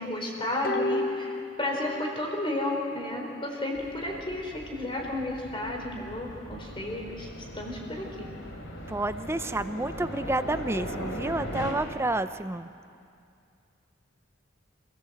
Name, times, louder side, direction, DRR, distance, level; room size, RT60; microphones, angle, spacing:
voice 1, 0.0-8.3, left 1 dB, 25° left, 1 dB, 4.0 m, -32 dB
sound 1, 0.6-2.3 2.6-2.7, left 2 dB, 50° left, 0.7 m, -32 dB
sound 2, 3.7-11.7, equal, 75° left, 3.6 m, -39 dB
voice 2, 8.9-12.7, right 2 dB, 15° right, 11 dB, 0.6 m, -30 dB
27.0 x 16.5 x 7.9 m, 2.4 s
head